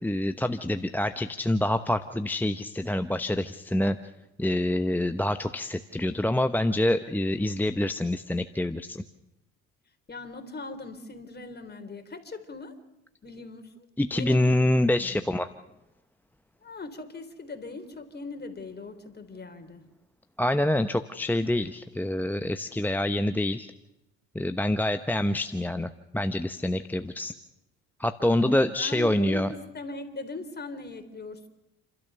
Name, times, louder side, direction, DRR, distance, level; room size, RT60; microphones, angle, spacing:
voice 1, 0.0-4.0 4.4-9.0 14.0-15.5 20.4-23.7 24.3-27.3 28.0-29.5, left 1 dB, 5° left, 8 dB, 0.9 m, -26 dB
voice 2, 10.1-12.8 13.2-13.9 14.1-14.7 15.0-15.2 16.6-19.9 28.2-29.5 29.7-31.5, left 3 dB, 30° left, 8 dB, 3.6 m, -40 dB
29.5 x 12.5 x 6.9 m, 0.92 s
hypercardioid pair, 65°, 34 cm